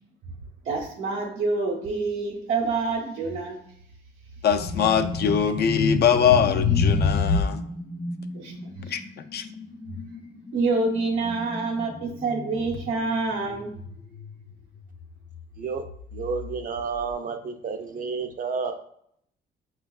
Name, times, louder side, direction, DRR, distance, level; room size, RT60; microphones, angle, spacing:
voice 1, 0.6-3.6 8.3-8.9 9.9-10.0 10.5-13.8, right 3 dB, 85° right, -2 dB, 0.8 m, -27 dB
voice 2, 4.4-7.6 8.9-9.0 9.3-9.5, left 8 dB, 55° left, 8 dB, 0.4 m, -22 dB
sound 1, 4.5-14.5 14.8-15.0 15.8-16.8, left 4 dB, 75° left, 0.8 m, -29 dB
voice 3, 16.1-18.7, right 5 dB, 45° right, 7 dB, 0.5 m, -30 dB
5.1 x 2.3 x 2.3 m, 0.70 s
cardioid pair, 90°, 20 cm